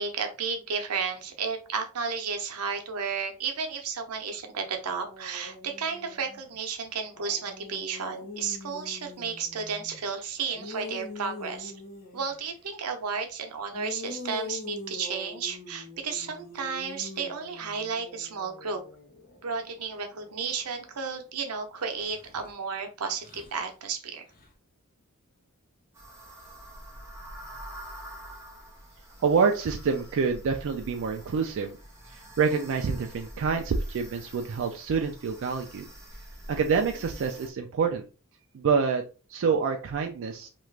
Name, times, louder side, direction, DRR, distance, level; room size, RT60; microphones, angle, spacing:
voice 1, 0.0-11.7 12.1-18.8 19.4-24.3, right 5 dB, 85° right, 5 dB, 0.7 m, -33 dB
sound 1, 5.0-6.5 7.0-10.1 10.5-12.4 13.7-21.3 21.9-22.5 23.1-23.6 24.3-24.5, left 3 dB, 40° left, 0.8 m, -43 dB
sound 2, 25.9-37.5, right 1 dB, 10° right, 0.9 m, -46 dB
voice 2, 29.2-31.8 32.1-35.8 36.5-38.0 38.5-39.0 39.3-40.5, right 5 dB, 60° right, 4 dB, 0.4 m, -27 dB
3.0 x 2.4 x 3.2 m, 0.34 s
head